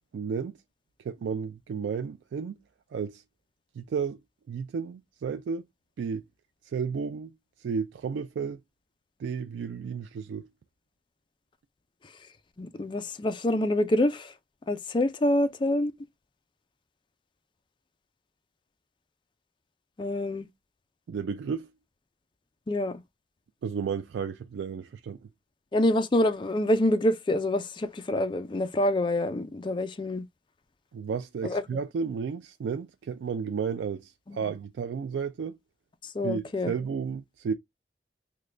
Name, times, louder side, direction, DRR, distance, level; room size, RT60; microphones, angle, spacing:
voice 1, 0.1-0.6 1.0-2.6 2.9-3.2 3.8-4.2 4.5-5.6 6.0-6.2 6.7-7.3 7.6-8.6 9.2-10.5 21.1-21.7 23.6-25.2 30.9-35.6 36.2-37.5, right 6 dB, 85° right, 0.3 m, -32 dB
voice 2, 12.6-14.3 14.7-15.9 20.0-20.5 22.7-23.0 25.7-30.3 31.4-31.6 34.3-34.5 36.0-36.7, left 1 dB, 25° left, 0.4 m, -26 dB
3.7 x 2.2 x 3.1 m
head